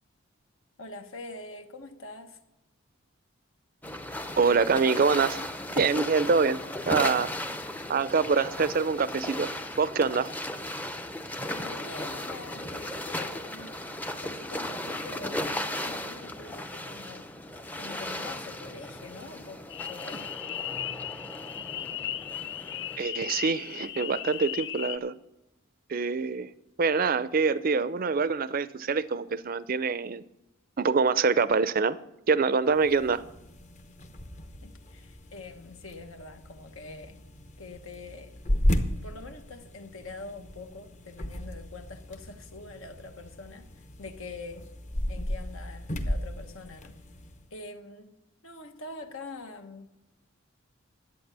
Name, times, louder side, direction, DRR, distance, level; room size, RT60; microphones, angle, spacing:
voice 1, 0.8-2.4 11.4-13.8 14.2-17.2 17.8-19.6 19.9-20.3 34.6-37.2 37.6-38.3 39.0-44.6 45.1-46.9 47.5-48.1 48.4-49.9, left 3 dB, 75° left, 1.3 m, -44 dB
sound 1, 3.8-23.0, left 1 dB, 10° left, 0.6 m, -36 dB
voice 2, 4.4-5.4 5.8-7.3 7.9-9.5 9.8-10.3 23.0-25.1 25.9-26.5 26.8-30.2 30.8-32.0 32.3-33.2, right 5 dB, 45° right, 0.5 m, -25 dB
sound 2, 19.7-25.0, left 11 dB, 55° left, 0.5 m, -36 dB
sound 3, 32.7-47.5, equal, 35° left, 0.9 m, -35 dB
11.5 x 8.5 x 6.8 m
head